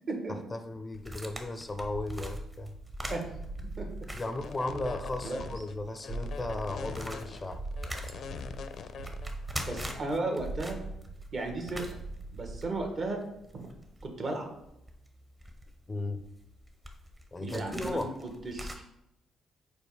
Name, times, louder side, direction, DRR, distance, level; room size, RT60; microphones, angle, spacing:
voice 1, 0.3-2.7 4.1-7.6 15.9-16.2 17.3-18.2, left 2 dB, 20° left, 8 dB, 0.5 m, -36 dB
sound 1, 0.9-5.1 5.4-5.5 6.0-18.8, equal, 15° right, 0.9 m, -43 dB
sound 2, 1.8-13.2, right 2 dB, 80° right, 0.6 m, -42 dB
sound 3, 4.2-9.9, left 6 dB, 65° left, 0.5 m, -43 dB
voice 2, 9.6-10.8 11.3-11.9 12.3-13.2 13.5-13.7 14.0-14.5 17.4-18.7, right 2 dB, 45° right, 3 dB, 1.5 m, -34 dB
5.2 x 4.2 x 4.9 m, 0.81 s
cardioid pair, 90°, 0 cm